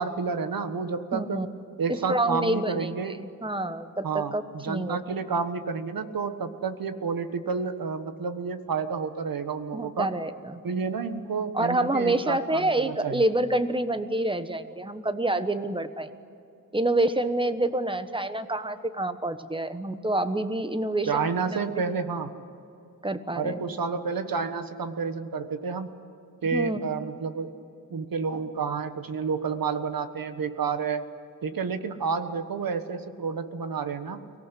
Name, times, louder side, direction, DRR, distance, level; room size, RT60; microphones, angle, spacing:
voice 1, 0.0-1.4 1.8-3.2 4.0-10.1 10.6-13.2 21.0-22.3 23.3-25.9 26.4-27.5 27.9-31.1 31.4-34.2, right 5 dB, 80° right, 10 dB, 1.4 m, -30 dB
voice 2, 1.1-1.5 1.9-2.9 3.4-5.0 9.7-10.6 11.5-16.1 16.7-21.6 23.0-23.6 26.5-26.8, right 1 dB, 15° right, 10 dB, 1.2 m, -27 dB
23.5 x 18.0 x 10.0 m, 2.7 s
wide cardioid pair, 90°, 34 cm